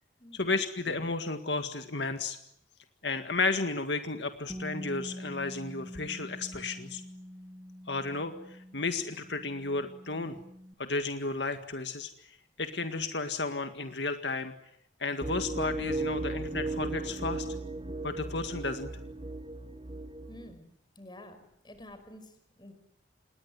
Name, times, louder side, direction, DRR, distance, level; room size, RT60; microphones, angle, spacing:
voice 1, 0.3-2.4 3.0-7.0 7.9-10.4 10.8-12.1 12.6-14.5 15.0-17.5 18.0-18.9, left 3 dB, 75° left, 7 dB, 1.9 m, -33 dB
Bass guitar, 4.5-10.7, equal, 10° right, 2.3 m, -45 dB
sound 1, 15.2-20.5, right 2 dB, 25° right, 1.2 m, -36 dB
voice 2, 20.3-22.7, left 1 dB, 25° left, 9 dB, 5.3 m, -51 dB
27.5 x 21.0 x 9.6 m, 0.75 s
head